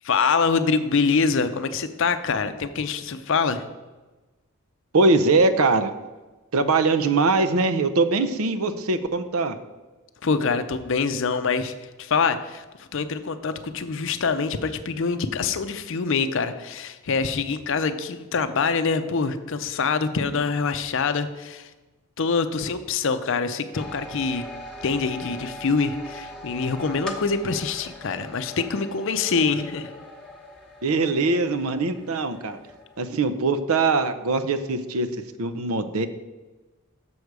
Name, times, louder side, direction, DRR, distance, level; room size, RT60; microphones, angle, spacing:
voice 1, 0.0-3.6 10.2-21.7 22.2-24.5 24.8-29.9, left 5 dB, 60° left, 10 dB, 0.5 m, -25 dB
voice 2, 4.9-5.9 6.5-9.5 30.8-32.6 33.0-35.1 35.4-36.1, right 3 dB, 75° right, 11 dB, 0.6 m, -22 dB
sound 1, 23.7-33.3, left 1 dB, 5° left, 0.9 m, -40 dB
7.0 x 6.6 x 4.7 m, 1.2 s
head